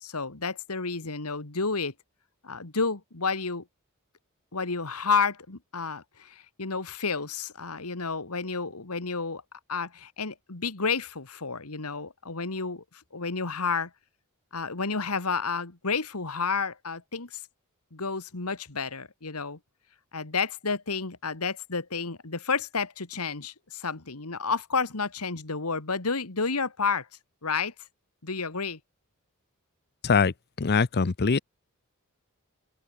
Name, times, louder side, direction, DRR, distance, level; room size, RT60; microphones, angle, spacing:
voice 1, 0.0-1.9 2.4-3.7 4.5-9.4 9.7-13.9 14.5-17.4 17.9-19.6 20.1-27.1 27.4-27.7 28.2-28.8, left 4 dB, 85° left, 2.1 m, -30 dB
voice 2, 30.0-31.4, left 5 dB, 50° left, 0.7 m, -23 dB
open air
head